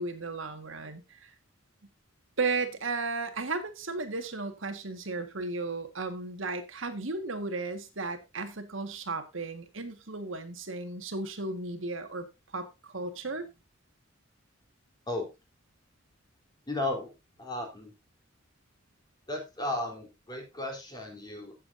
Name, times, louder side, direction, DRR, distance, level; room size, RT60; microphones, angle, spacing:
voice 1, 0.0-1.3 2.4-12.3 12.5-13.5, right 3 dB, 70° right, 1.7 m, -34 dB
voice 2, 16.7-17.1 17.4-17.9 19.3-21.5, left 2 dB, 20° left, 3.7 m, -34 dB
16.0 x 7.7 x 2.7 m
head